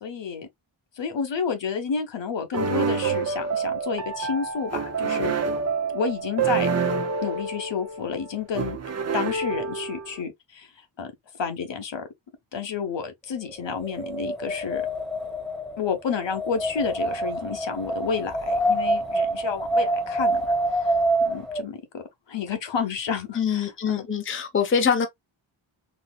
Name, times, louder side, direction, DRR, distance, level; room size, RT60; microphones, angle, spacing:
voice 1, 0.0-0.5 1.0-5.3 5.9-6.7 7.2-8.8 9.1-10.7 11.0-11.1 11.4-12.0 12.5-14.8 15.8-20.4 20.8-20.9 21.2-24.1, left 6 dB, 65° left, 1.0 m, -30 dB
sound 1, 2.5-10.2, right 5 dB, 35° right, 0.6 m, -27 dB
Wind, 13.7-21.6, right 1 dB, ahead, 1.2 m, -26 dB
voice 2, 23.3-25.1, left 6 dB, 25° left, 0.7 m, -24 dB
4.1 x 2.7 x 2.3 m
wide cardioid pair, 105°, 48 cm